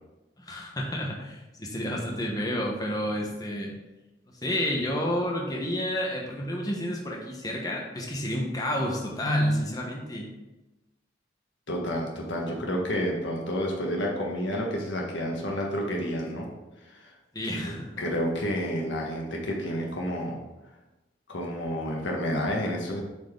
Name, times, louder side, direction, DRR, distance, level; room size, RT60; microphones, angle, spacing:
voice 1, 0.4-3.7 4.4-10.3 17.3-18.0, equal, 20° left, -1 dB, 1.0 m, -30 dB
voice 2, 11.7-16.5 16.8-17.1 17.4-20.3 21.3-23.0, equal, 75° left, -1 dB, 1.5 m, -30 dB
7.8 x 4.5 x 3.7 m, 1.0 s
head